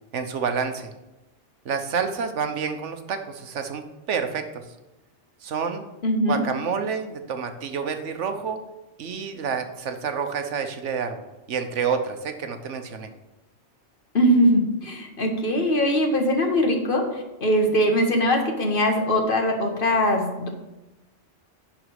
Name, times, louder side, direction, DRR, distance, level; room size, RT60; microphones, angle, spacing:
voice 1, 0.1-0.9 1.6-4.6 5.4-5.8 6.3-8.6 9.0-11.2 11.5-13.1, right 6 dB, 75° right, 7 dB, 1.2 m, -28 dB
voice 2, 6.0-6.4 14.1-20.5, equal, 50° left, 3 dB, 1.4 m, -21 dB
11.0 x 4.0 x 6.4 m, 1.0 s
omnidirectional pair, 1.2 m